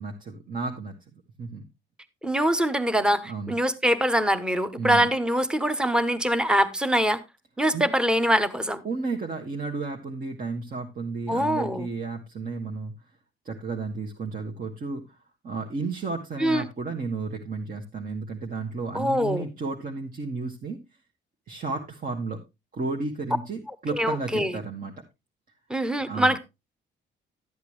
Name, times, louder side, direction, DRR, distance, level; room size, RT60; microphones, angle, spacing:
voice 1, 0.0-1.6 3.2-3.5 4.8-5.1 7.7-7.8 8.8-12.9 13.4-15.2 15.4-20.8 21.5-22.4 22.7-24.9 26.1-26.4, right 4 dB, 45° right, 1.5 m, -33 dB
voice 2, 2.2-7.2 7.6-8.8 11.3-11.9 16.4-16.7 18.9-19.5 24.0-24.5 25.7-26.4, equal, 5° right, 0.9 m, -23 dB
12.5 x 8.2 x 3.2 m
cardioid pair, 90°, 20 cm